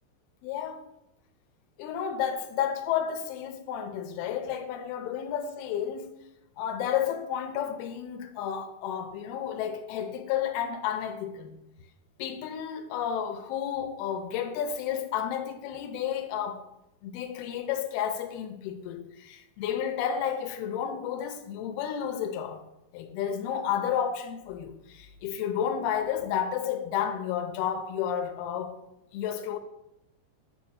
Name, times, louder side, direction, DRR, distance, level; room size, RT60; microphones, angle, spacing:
voice 1, 0.4-0.8 1.8-6.1 6.6-11.6 12.2-16.6 17.0-22.6 22.9-28.8 29.1-29.6, left 9 dB, 90° left, 2.7 m, -31 dB
9.1 x 4.8 x 7.2 m
omnidirectional pair, 4.4 m